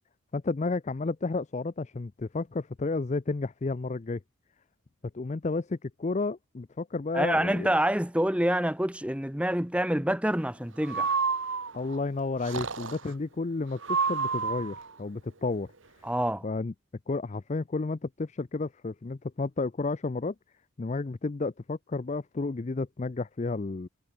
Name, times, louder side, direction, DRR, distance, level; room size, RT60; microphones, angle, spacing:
voice 1, 0.3-4.2 5.1-7.7 11.7-15.7 16.4-16.7 17.1-20.3 20.8-23.9, left 3 dB, 30° left, 0.4 m, -32 dB
voice 2, 7.1-11.2 16.0-16.4, right 1 dB, 5° right, 1.3 m, -27 dB
Breathing, 10.8-12.0 12.4-13.1 13.8-14.9, right 5 dB, 60° right, 1.4 m, -29 dB
head